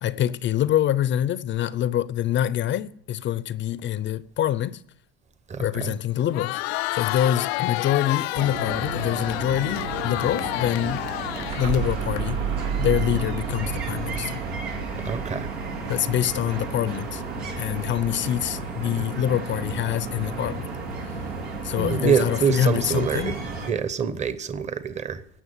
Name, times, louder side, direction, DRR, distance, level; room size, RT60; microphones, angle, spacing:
voice 1, 0.0-4.8 5.6-11.0 11.6-12.4 12.8-14.4 15.9-17.2 17.6-20.7 21.1-21.2 21.6-23.4, left 11 dB, 40° left, 0.6 m, -25 dB
voice 2, 5.5-5.9 15.0-15.5 21.8-23.4 23.7-25.2, right 7 dB, 20° right, 1.0 m, -25 dB
Crowd, 6.2-12.2, left 20 dB, 80° left, 0.5 m, -30 dB
sound 1, 8.3-23.7, right 3 dB, 90° right, 2.9 m, -33 dB
sound 2, 11.2-17.0, right 7 dB, 70° right, 3.6 m, -31 dB
17.0 x 6.1 x 8.4 m
supercardioid pair, 100°, 31 cm